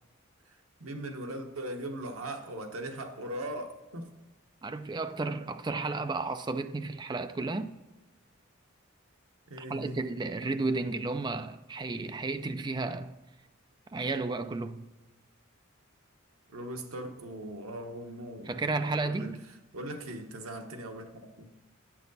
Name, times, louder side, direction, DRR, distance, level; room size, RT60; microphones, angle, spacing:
voice 1, 0.4-4.1 9.5-10.0 16.5-18.5 19.0-19.3 19.7-21.5, right 1 dB, 85° right, 1.0 m, -39 dB
voice 2, 4.6-7.7 9.7-13.1 13.9-14.9 18.5-19.4, right 3 dB, 20° right, 0.3 m, -33 dB
8.8 x 6.1 x 4.0 m
head